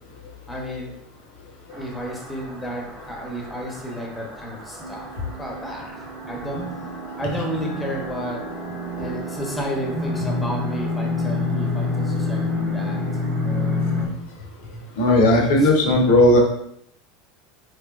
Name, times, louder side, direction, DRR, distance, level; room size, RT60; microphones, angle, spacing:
voice 1, 0.5-0.9 1.7-5.1 5.4-6.6 7.2-8.5 9.0-13.0 15.5-15.7, equal, 10° left, -1 dB, 0.9 m, -32 dB
sound 1, 1.7-14.1, left 2 dB, 50° right, 0.9 m, -28 dB
voice 2, 15.0-16.4, left 1 dB, 65° left, 1 dB, 0.7 m, -15 dB
3.8 x 2.7 x 2.3 m, 0.74 s
figure-of-eight pair, 80°, 0 cm